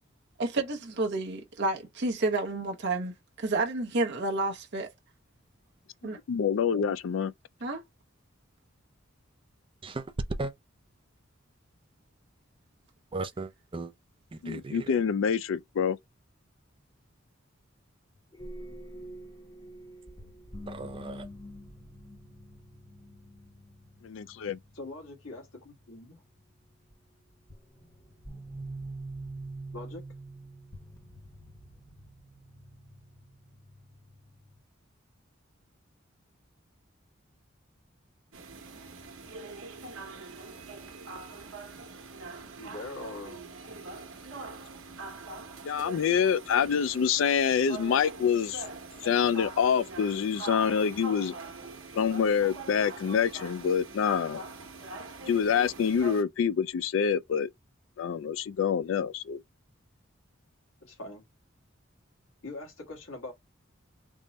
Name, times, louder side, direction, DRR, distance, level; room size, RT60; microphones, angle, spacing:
voice 1, 0.4-4.9 6.0-6.2 7.6-7.8, right 2 dB, 55° right, 0.7 m, -30 dB
voice 2, 6.3-7.3 14.4-16.0 24.0-24.6 45.6-48.6 49.0-51.3 52.0-54.4 55.3-57.5 58.0-59.4, left 7 dB, 70° left, 0.3 m, -26 dB
voice 3, 13.1-13.9 14.5-14.9 20.7-21.3, right 3 dB, 25° right, 0.5 m, -36 dB
sound 1, 18.3-25.2 26.9-27.0 27.5-34.6, right 1 dB, 20° left, 0.8 m, -45 dB
voice 4, 24.7-26.2 29.7-30.0 42.6-43.4 60.8-61.2 62.4-63.3, left 2 dB, 90° left, 1.5 m, -42 dB
sound 2, 38.3-56.2, right 3 dB, 85° right, 1.0 m, -43 dB
3.6 x 2.1 x 3.9 m
head